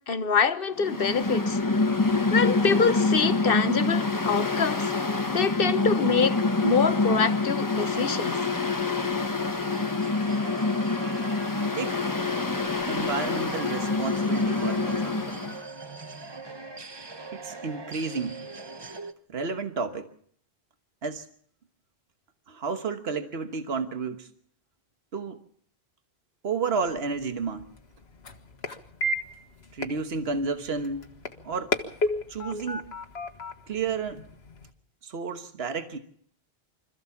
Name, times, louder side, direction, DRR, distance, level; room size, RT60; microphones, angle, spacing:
voice 1, 0.1-1.6 2.3-4.9 5.3-8.4, left 5 dB, 60° left, 1.2 m, -25 dB
Mechanical fan, 0.8-15.6, left 3 dB, 20° left, 1.0 m, -26 dB
sound 1, 9.6-19.1, right 3 dB, 25° right, 0.9 m, -41 dB
voice 2, 12.9-15.4 17.3-18.4 19.3-20.1 21.0-21.2 22.5-24.3 25.1-25.4 26.4-27.6 29.7-31.1 31.4-31.7 32.3-32.9 33.7-34.2 35.0-36.0, right 4 dB, 75° right, 1.5 m, -31 dB
sound 2, 26.8-34.7, left 1 dB, 75° left, 1.8 m, -34 dB
25.5 x 14.5 x 7.1 m
omnidirectional pair, 1.1 m